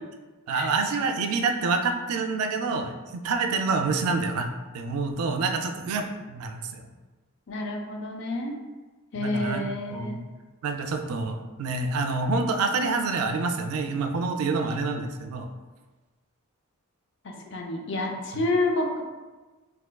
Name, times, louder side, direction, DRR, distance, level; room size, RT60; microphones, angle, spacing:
voice 1, 0.5-4.5 4.7-6.9 9.1-10.2 10.6-15.5 18.3-18.4, right 4 dB, 85° right, 5 dB, 0.3 m, -27 dB
voice 2, 7.5-8.6 9.1-10.2 17.2-19.0, left 2 dB, 55° left, 2 dB, 0.4 m, -29 dB
3.3 x 2.9 x 2.2 m, 1.3 s
head